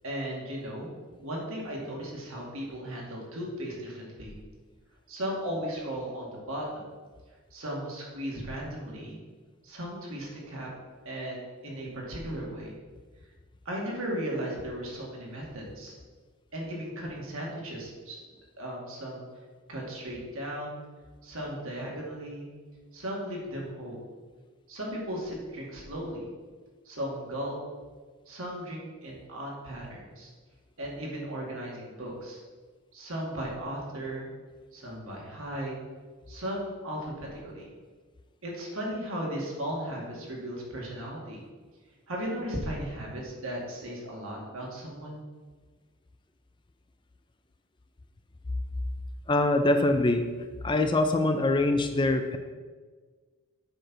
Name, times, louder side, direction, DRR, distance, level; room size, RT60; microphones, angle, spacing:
voice 1, 0.0-4.3 5.1-6.9 7.5-9.2 9.6-10.7 11.0-12.7 13.7-16.0 16.5-18.2 18.6-19.2 19.7-20.8 21.2-22.5 22.9-24.0 24.7-26.2 26.8-27.5 28.3-30.3 30.8-32.4 32.9-34.3 34.7-35.7 36.3-37.7 38.4-41.4 42.1-45.2, equal, 70° right, -3 dB, 2.2 m, -36 dB
voice 2, 49.3-50.3 50.6-52.4, left 2 dB, 20° left, 7 dB, 0.4 m, -24 dB
7.8 x 4.4 x 6.1 m, 1.4 s
head